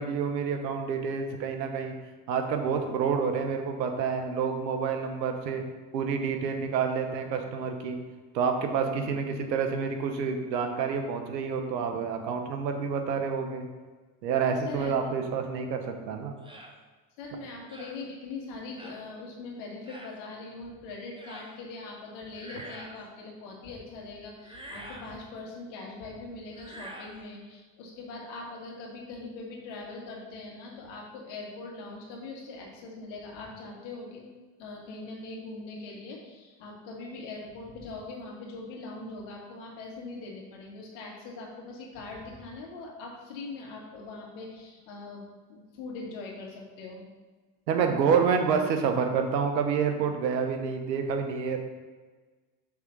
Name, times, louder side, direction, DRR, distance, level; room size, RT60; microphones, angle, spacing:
voice 1, 0.0-1.9 2.3-5.6 5.9-8.0 8.3-13.7 14.2-16.3 47.7-51.6, right 6 dB, 85° right, 5 dB, 1.0 m, -28 dB
voice 2, 14.6-14.9 17.2-34.3 34.6-47.0, left 3 dB, 65° left, -1 dB, 1.9 m, -41 dB
sound 1, 16.4-16.7 17.7-18.0 18.8-19.0 19.8-20.2 21.2-21.5 22.3-23.0 24.4-25.1 26.5-27.2, right 1 dB, 10° right, 1.1 m, -45 dB
5.9 x 3.7 x 5.9 m, 1.3 s
hypercardioid pair, 70°, 49 cm